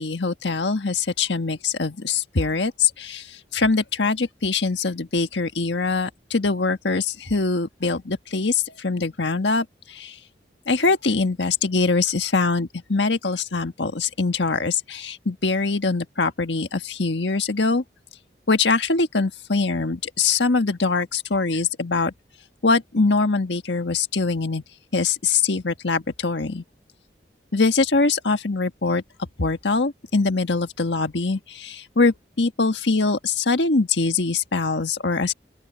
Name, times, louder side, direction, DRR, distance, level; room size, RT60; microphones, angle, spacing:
voice 1, 0.0-10.2 10.7-17.8 18.5-22.1 22.6-24.6 24.9-26.6 27.5-29.0 29.4-35.3, left 4 dB, 85° left, 1.5 m, -23 dB
open air
head